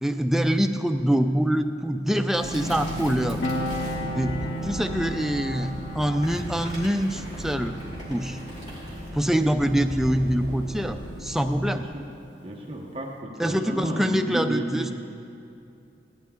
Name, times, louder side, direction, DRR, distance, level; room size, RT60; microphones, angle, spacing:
voice 1, 0.0-3.4 4.1-7.8 8.1-8.4 9.1-11.9 13.4-15.0, equal, ahead, 6 dB, 0.3 m, -25 dB
sound 1, 2.4-11.6, right 1 dB, 35° left, 2.8 m, -35 dB
Piano, 3.4-10.4 10.7-10.9, left 2 dB, 85° left, 0.8 m, -37 dB
voice 2, 11.7-15.0, right 1 dB, 30° right, -1 dB, 0.9 m, -32 dB
17.0 x 11.5 x 3.7 m, 2.7 s
head